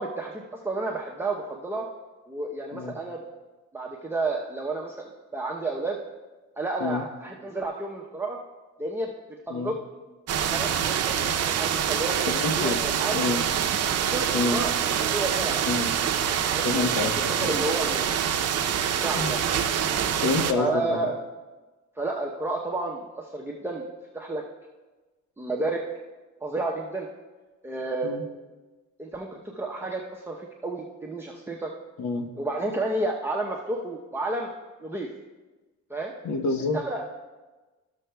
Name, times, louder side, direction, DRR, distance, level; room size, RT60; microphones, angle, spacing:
voice 1, 0.0-1.9 2.3-3.2 3.7-6.0 6.6-8.4 8.8-9.1 9.5-9.8 10.5-12.2 12.6-13.3 13.8-15.7 16.5-18.2 18.8-20.0 20.5-21.2 22.0-23.9 24.1-24.4 25.4-25.8 26.4-27.1 27.6-28.1 29.0-31.7 32.4-34.5 34.8-35.1 35.9-36.1 36.7-37.1, right 2 dB, 10° right, -2 dB, 0.7 m, -31 dB
sound 1, 10.3-20.5, right 8 dB, 55° right, 0.6 m, -26 dB
voice 2, 12.3-12.8 13.1-13.4 14.3-14.6 15.7-15.9 16.6-17.5 19.2-19.4 20.1-21.1 28.0-28.2 32.0-32.3 36.2-36.8, left 3 dB, 70° left, 4 dB, 1.0 m, -28 dB
14.0 x 6.5 x 2.2 m, 1.2 s
cardioid pair, 90°, 30 cm